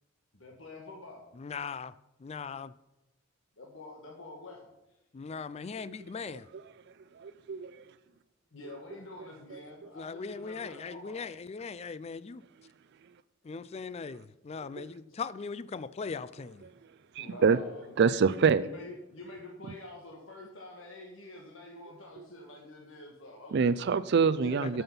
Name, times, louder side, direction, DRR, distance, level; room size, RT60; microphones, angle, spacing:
voice 1, 0.4-1.2 3.6-4.6 8.5-11.3 17.2-18.2 18.5-23.8 24.4-24.8, left 2 dB, 70° left, 1.5 m, -47 dB
voice 2, 1.4-1.9 2.2-2.7 5.1-6.5 9.9-12.4 13.4-16.7 24.6-24.7, left 5 dB, 30° left, 0.3 m, -39 dB
voice 3, 7.2-7.7 9.5-9.6 14.8-14.9 17.2-17.6 18.0-18.6 22.2-22.3 23.5-24.8, right 5 dB, 55° right, 0.4 m, -25 dB
12.5 x 5.7 x 5.4 m
head